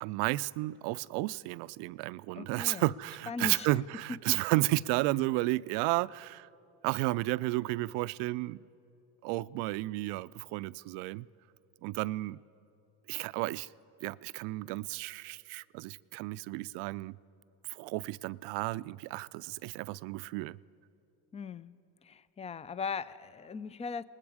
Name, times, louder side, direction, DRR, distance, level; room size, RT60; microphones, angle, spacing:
voice 1, 0.0-6.5 6.8-8.7 9.2-11.3 11.8-12.4 13.1-13.7 14.0-17.2 17.7-20.6, right 19 dB, 70° right, 0.5 m, -32 dB
voice 2, 2.4-2.8 3.3-3.7 4.3-4.4 21.3-21.7 22.0-24.0, left 5 dB, 15° left, 0.3 m, -38 dB
27.0 x 19.5 x 4.9 m
supercardioid pair, 95°, 44 cm